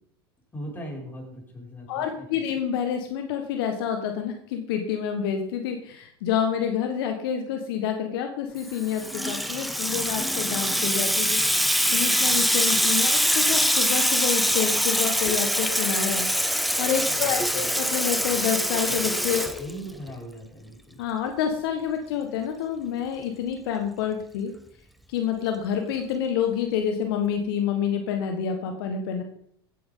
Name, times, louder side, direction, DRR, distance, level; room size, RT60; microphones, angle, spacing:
voice 1, 0.5-2.4 17.0-17.7 19.6-21.0, equal, 15° left, -3 dB, 5.9 m, -40 dB
voice 2, 1.9-19.7 21.0-24.5 25.1-29.2, left 8 dB, 70° left, 4 dB, 1.5 m, -28 dB
Water tap faucet / Sink (filling or washing), 8.7-20.1, equal, ahead, 1.1 m, -24 dB
15.5 x 9.4 x 3.9 m, 0.66 s
hypercardioid pair, 85°, 13 cm